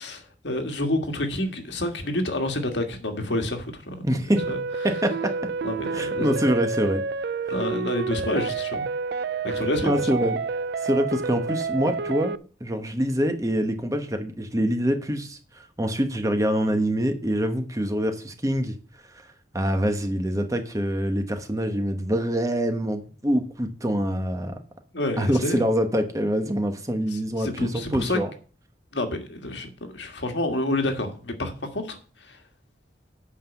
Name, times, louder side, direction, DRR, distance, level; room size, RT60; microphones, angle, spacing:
voice 1, 0.0-4.0 4.5-4.6 5.6-6.4 7.5-8.8 9.4-9.9 24.9-25.7 27.1-28.2 28.9-32.4, left 1 dB, 75° left, 1.7 m, -29 dB
voice 2, 4.0-4.4 4.8-5.3 5.9-7.0 9.8-10.4 10.8-12.3 12.6-18.7 19.5-24.6 25.2-28.3, equal, 20° right, 1.1 m, -25 dB
sound 1, 4.4-12.4, right 4 dB, 60° right, 0.4 m, -29 dB
8.5 x 5.6 x 7.0 m
head